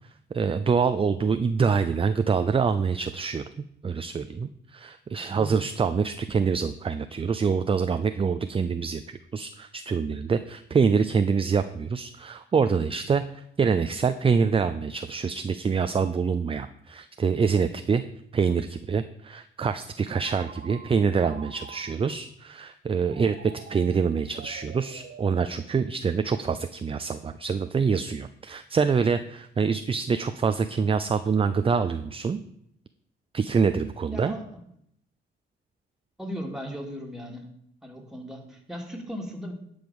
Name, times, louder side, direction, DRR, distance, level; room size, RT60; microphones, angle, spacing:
voice 1, 0.3-3.4 3.8-18.0 18.3-23.3 23.7-32.4 33.3-34.3, right 5 dB, 30° right, 10 dB, 0.5 m, -25 dB
Telephone, 20.2-22.2 23.0-26.1, right 6 dB, 65° right, 1.5 m, -47 dB
voice 2, 34.1-34.5 36.2-37.5 37.8-39.5, equal, 5° right, 1 dB, 2.6 m, -37 dB
11.5 x 5.1 x 7.1 m, 0.73 s
cardioid pair, 90°, 20 cm